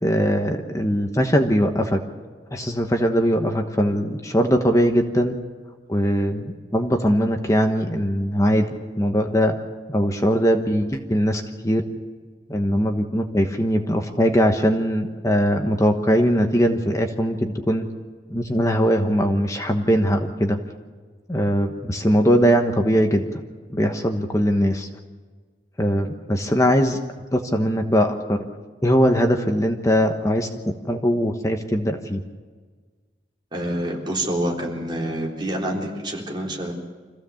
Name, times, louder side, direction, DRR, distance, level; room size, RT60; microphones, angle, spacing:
voice 1, 0.0-2.0 2.5-5.3 5.9-8.6 9.0-9.6 9.9-11.8 12.5-17.9 18.3-20.6 21.3-23.3 23.7-24.9 25.8-27.0 27.3-28.4 28.8-32.2, equal, 20° left, 4 dB, 1.2 m, -21 dB
voice 2, 33.5-36.7, right 1 dB, 25° right, -2 dB, 3.7 m, -27 dB
25.5 x 16.0 x 7.2 m, 1.5 s
head